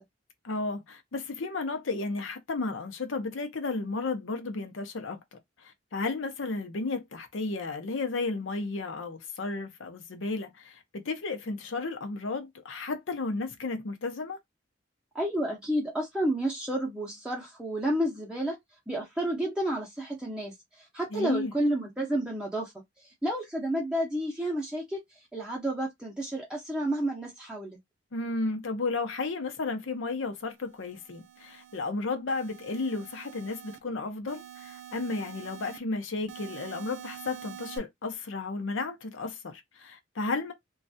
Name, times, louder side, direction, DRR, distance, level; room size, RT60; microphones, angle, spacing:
voice 1, 0.4-14.4 21.1-21.5 28.1-40.5, left 3 dB, 75° left, 0.6 m, -33 dB
voice 2, 15.1-18.6 18.9-22.7 23.2-25.0 25.3-27.8, right 1 dB, 5° right, 0.6 m, -30 dB
sound 1, 30.7-31.8 32.3-33.8 34.3-35.8 36.3-37.8, right 10 dB, 70° right, 0.5 m, -46 dB
3.2 x 2.3 x 2.5 m
head